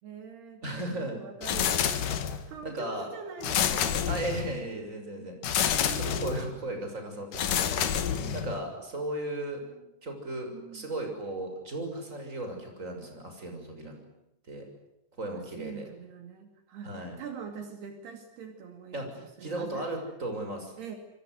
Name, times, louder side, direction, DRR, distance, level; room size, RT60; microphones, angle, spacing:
voice 1, 0.0-4.0 4.4-4.8 5.2-5.3 5.7-6.7 8.1-8.6 9.6-9.9 10.4-11.0 13.8-14.2 15.5-19.9 20.8-21.0, right 6 dB, 70° right, 6 dB, 4.4 m, -44 dB
voice 2, 0.6-1.2 2.6-3.1 4.1-5.3 6.0-9.6 10.0-13.9 14.5-14.7 15.2-15.9 16.8-17.2 18.9-19.1 19.4-20.7, right 1 dB, 15° right, 4 dB, 6.5 m, -36 dB
sound 1, 1.4-2.5 3.4-4.6 5.4-6.5 7.3-8.6, left 9 dB, 60° left, 2.8 m, -28 dB
27.0 x 25.5 x 8.1 m, 0.85 s
omnidirectional pair, 5.0 m